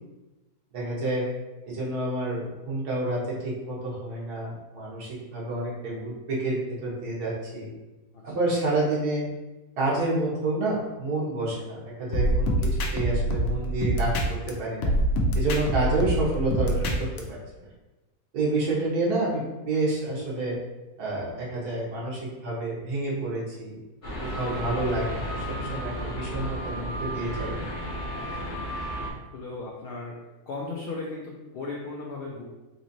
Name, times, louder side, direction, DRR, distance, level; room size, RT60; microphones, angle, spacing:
voice 1, 0.7-1.2 1.7-7.7 8.2-9.2 9.8-14.9 15.3-17.7 18.3-20.6 21.0-23.8 24.2-27.7, right 2 dB, 75° right, -5 dB, 1.5 m, -29 dB
sound 1, 12.1-14.5 14.8-17.2, equal, 70° left, 1.0 m, -25 dB
sound 2, 24.0-29.1, equal, 40° left, 0.8 m, -33 dB
voice 2, 29.3-30.2 30.5-32.4, left 3 dB, 90° left, -2 dB, 0.5 m, -36 dB
4.0 x 3.0 x 2.6 m, 1.1 s
omnidirectional pair, 1.6 m